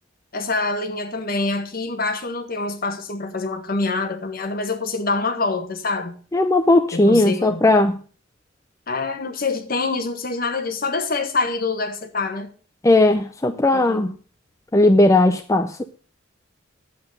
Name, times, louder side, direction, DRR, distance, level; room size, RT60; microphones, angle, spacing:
voice 1, 0.3-6.2 6.9-7.6 8.9-12.5 13.7-14.2, left 3 dB, 50° left, 1.6 m, -25 dB
voice 2, 6.3-7.9 12.8-14.1 14.7-15.8, left 2 dB, 15° left, 0.5 m, -17 dB
10.5 x 7.9 x 5.1 m
head